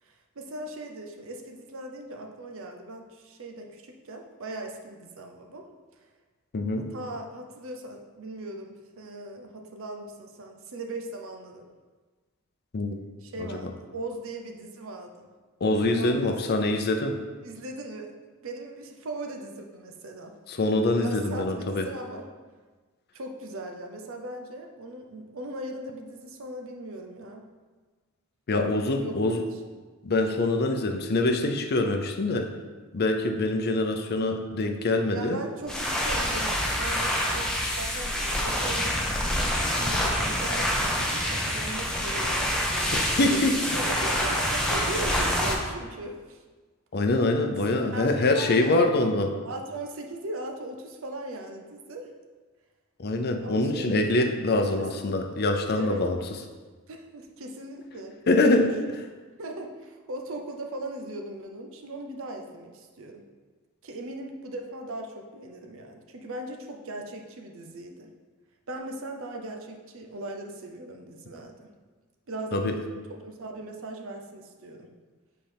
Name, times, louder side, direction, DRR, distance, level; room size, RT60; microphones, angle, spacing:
voice 1, 0.0-5.7 6.0-6.1 6.9-11.7 13.2-15.3 15.9-16.3 17.4-18.1 18.4-20.3 21.0-22.3 23.1-27.5 29.0-29.4 35.1-46.4 47.5-48.8 49.4-52.1 53.4-54.1 54.5-54.9 55.7-56.3 56.9-58.2 58.5-59.0 59.4-63.2 63.8-68.1 68.7-71.7 72.3-72.8 73.1-74.9, right 2 dB, 65° right, 3 dB, 0.7 m, -39 dB
voice 2, 6.5-6.9 12.7-13.0 13.4-13.5 15.6-17.2 20.5-21.9 28.5-29.4 30.0-32.5 32.9-35.4 42.9-43.6 46.9-49.4 53.0-56.2 58.3-58.8 72.5-72.7, left 2 dB, 50° left, 5 dB, 0.6 m, -24 dB
sound 1, 35.6-45.5, equal, 5° left, 0.8 m, -27 dB
7.6 x 4.3 x 3.4 m, 1.4 s
head